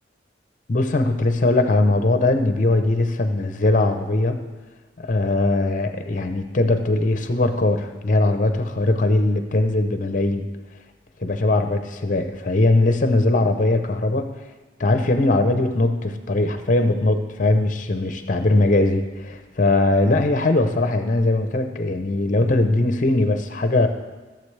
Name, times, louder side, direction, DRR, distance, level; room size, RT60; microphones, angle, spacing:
voice 1, 0.7-4.4 5.0-10.4 11.2-14.3 14.8-23.9, left 2 dB, 45° left, 8 dB, 0.7 m, -20 dB
15.0 x 7.1 x 3.3 m, 1.2 s
head